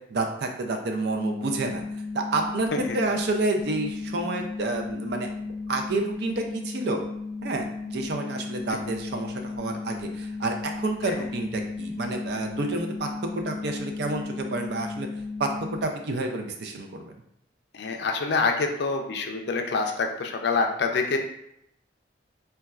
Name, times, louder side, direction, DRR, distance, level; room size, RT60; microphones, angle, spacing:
voice 1, 0.1-1.8 2.1-7.0 7.4-15.1 15.4-17.1, right 2 dB, 60° right, 4 dB, 0.4 m, -29 dB
sound 1, 1.1-15.8, left 3 dB, 40° right, 1.2 m, -35 dB
voice 2, 17.7-21.2, left 4 dB, 60° left, 4 dB, 0.4 m, -26 dB
4.1 x 2.2 x 2.3 m, 0.77 s
head